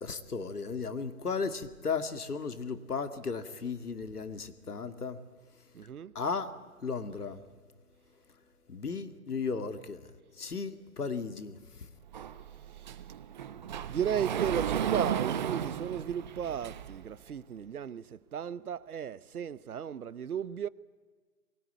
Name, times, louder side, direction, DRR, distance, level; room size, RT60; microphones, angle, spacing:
voice 1, 0.0-5.2 6.1-6.5 6.8-7.4 8.7-10.1 10.4-11.9, left 5 dB, 90° left, 2.3 m, -35 dB
voice 2, 5.7-6.1 13.9-20.7, right 8 dB, 75° right, 1.0 m, -35 dB
Sliding door, 12.1-17.1, right 9 dB, 30° right, 0.9 m, -34 dB
23.0 x 20.5 x 9.5 m
hypercardioid pair, 150°, 44 cm